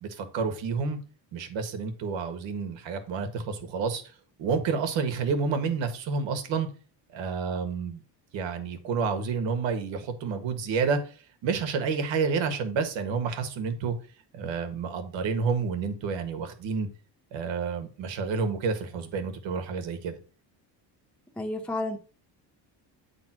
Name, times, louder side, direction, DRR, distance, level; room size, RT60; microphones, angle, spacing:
voice 1, 0.0-1.0 1.3-4.0 4.4-6.7 7.1-8.0 8.3-11.1 11.4-13.9 14.3-16.9 17.3-20.2, right 5 dB, 85° right, 7 dB, 1.7 m, -29 dB
voice 2, 21.4-22.0, left 2 dB, ahead, 1 dB, 0.9 m, -31 dB
9.3 x 3.7 x 5.9 m, 0.37 s
cardioid pair, 180°, 44 cm